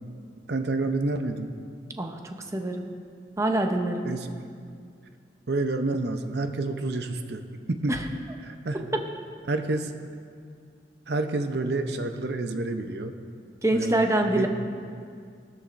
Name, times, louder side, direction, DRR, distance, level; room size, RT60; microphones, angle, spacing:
voice 1, 0.5-1.5 4.0-4.3 5.5-8.0 8.4-8.8 9.5-9.9 11.1-13.2 13.7-14.5, right 2 dB, 65° right, 7 dB, 0.7 m, -29 dB
voice 2, 2.0-2.9 3.4-4.0 7.9-8.0 8.7-9.0 13.6-14.5, right 1 dB, 15° right, 3 dB, 0.7 m, -25 dB
19.5 x 13.5 x 2.6 m, 2.2 s
head